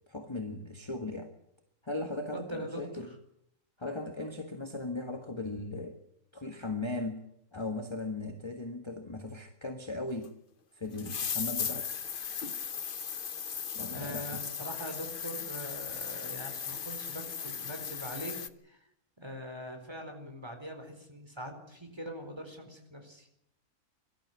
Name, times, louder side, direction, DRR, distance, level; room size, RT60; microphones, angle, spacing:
voice 1, 0.1-1.3 1.8-3.1 3.8-6.0 6.3-7.2 7.5-10.3 10.8-11.9 13.7-14.4, left 2 dB, 20° left, 4 dB, 1.7 m, -37 dB
voice 2, 2.3-2.8 3.1-3.2 13.9-18.3 18.6-18.8 19.2-23.3, equal, 15° right, 4 dB, 4.5 m, -42 dB
sound 1, 10.2-10.3 11.0-18.5, left 7 dB, 45° left, 0.9 m, -37 dB
23.0 x 13.0 x 9.7 m, 0.77 s
omnidirectional pair, 1.5 m